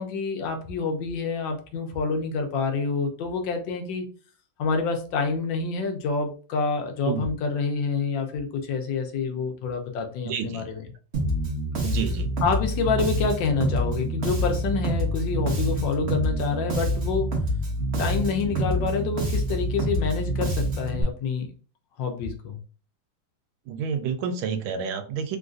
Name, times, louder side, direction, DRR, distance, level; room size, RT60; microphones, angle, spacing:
voice 1, 0.0-4.1 4.6-10.9 12.4-17.3 18.0-21.5 22.0-22.6, left 4 dB, 70° left, 4 dB, 1.3 m, -27 dB
voice 2, 10.2-10.7 11.8-12.3 23.7-25.4, right 7 dB, 90° right, 8 dB, 1.4 m, -29 dB
Bass guitar, 11.1-21.0, right 1 dB, 50° right, 0.8 m, -27 dB
3.8 x 2.5 x 2.4 m, 0.38 s
omnidirectional pair, 2.2 m